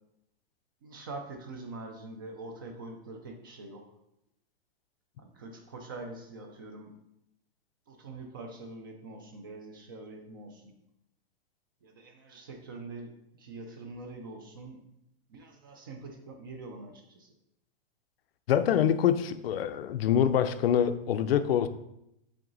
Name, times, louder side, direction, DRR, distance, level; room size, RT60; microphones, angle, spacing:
voice 1, 0.8-3.8 5.2-6.9 7.9-10.7 11.8-13.1 13.4-14.8 15.3-17.3, right 2 dB, 25° right, 4 dB, 0.4 m, -44 dB
voice 2, 18.5-21.7, left 9 dB, 75° left, 11 dB, 0.6 m, -25 dB
7.6 x 3.8 x 4.0 m, 0.82 s
supercardioid pair, 175°, 30 cm